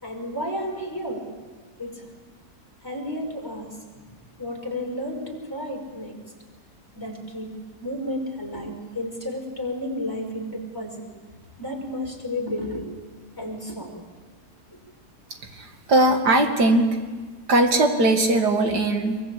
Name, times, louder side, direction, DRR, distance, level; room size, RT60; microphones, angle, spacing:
voice 1, 0.0-1.2 1.8-2.0 2.8-4.1 4.4-6.1 6.9-7.5 7.8-11.1 11.6-12.9 13.4-14.0 14.7-14.8, left 1 dB, 10° left, 0 dB, 5.3 m, -32 dB
voice 2, 15.5-17.0 17.5-19.2, right 2 dB, 85° right, 4 dB, 2.9 m, -20 dB
23.5 x 23.5 x 8.6 m, 1.4 s
omnidirectional pair, 1.7 m